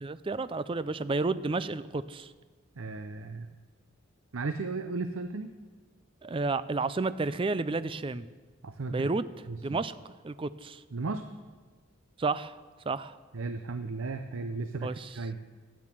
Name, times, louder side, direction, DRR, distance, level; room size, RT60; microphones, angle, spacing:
voice 1, 0.0-2.3 6.2-8.3 8.9-9.2 9.6-9.9 10.2-10.8 12.2-12.6 12.9-13.2 14.8-15.2, right 3 dB, 25° right, 15 dB, 0.4 m, -31 dB
voice 2, 2.8-3.5 4.3-5.5 8.6-9.1 9.5-9.8 10.9-11.2 13.3-15.4, right 3 dB, 85° right, 9 dB, 0.6 m, -35 dB
13.5 x 9.7 x 7.4 m, 1.4 s
head